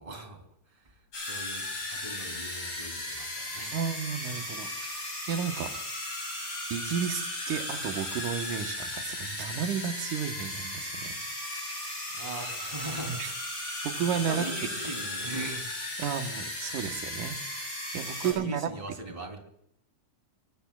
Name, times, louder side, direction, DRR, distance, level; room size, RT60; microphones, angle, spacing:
voice 1, 0.0-3.8 4.0-4.6 12.1-13.5 14.1-16.0 18.2-19.4, right 2 dB, 10° right, 5 dB, 3.0 m, -41 dB
Never Ending, 1.1-18.3, left 1 dB, 35° left, 7.1 m, -36 dB
voice 2, 3.7-5.7 6.7-11.2 13.0-13.3 13.8-14.5 16.0-18.7, right 8 dB, 75° right, 5 dB, 2.6 m, -33 dB
25.0 x 21.0 x 2.4 m, 0.71 s
omnidirectional pair, 3.6 m